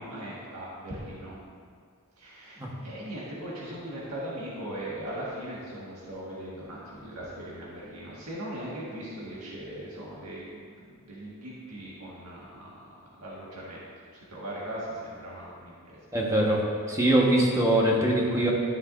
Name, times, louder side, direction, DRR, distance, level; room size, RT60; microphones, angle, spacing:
voice 1, 0.0-1.4 2.2-12.9 13.2-13.8 14.1-16.0, right 1 dB, 80° right, -6 dB, 1.7 m, -39 dB
voice 2, 16.1-16.6 16.9-18.5, right 1 dB, 15° right, -3 dB, 1.3 m, -22 dB
13.0 x 7.0 x 2.6 m, 2.1 s
head